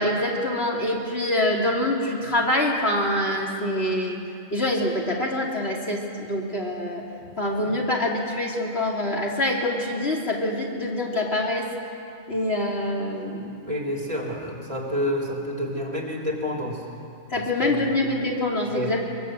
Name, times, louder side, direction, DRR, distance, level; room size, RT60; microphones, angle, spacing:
voice 1, 0.0-4.2 4.5-7.0 7.4-11.7 12.3-13.6 17.3-19.0, left 1 dB, 45° left, -3 dB, 3.1 m, -25 dB
voice 2, 13.6-16.8 17.3-17.9 18.7-19.0, equal, 25° right, -2 dB, 3.8 m, -29 dB
23.5 x 22.5 x 8.2 m, 2.6 s
omnidirectional pair, 1.4 m